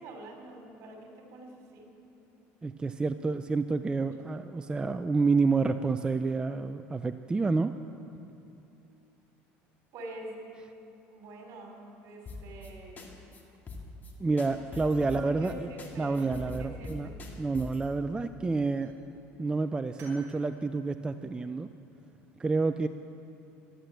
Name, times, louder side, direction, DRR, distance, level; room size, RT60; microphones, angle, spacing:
voice 1, 0.0-1.9 9.9-10.4 11.1-13.1 14.5-17.2, right 1 dB, 60° right, 2 dB, 3.2 m, -46 dB
voice 2, 2.6-7.7 14.2-15.7 16.0-17.1 17.4-18.9 19.4-21.7 22.4-22.9, right 3 dB, 15° right, 9 dB, 0.4 m, -29 dB
sound 1, 12.3-12.7 13.0-13.1 13.3-13.4 13.7-14.1 14.4-15.5 15.8-17.8, left 2 dB, 30° left, 2.1 m, -42 dB
sound 2, 12.3-13.0 13.4-14.0 14.8-15.3 15.6-16.5 17.9-18.4 18.8-19.0 20.0-20.3, right 2 dB, 40° right, 3.9 m, -57 dB
11.5 x 11.5 x 7.9 m, 2.7 s
supercardioid pair, 105°, 6 cm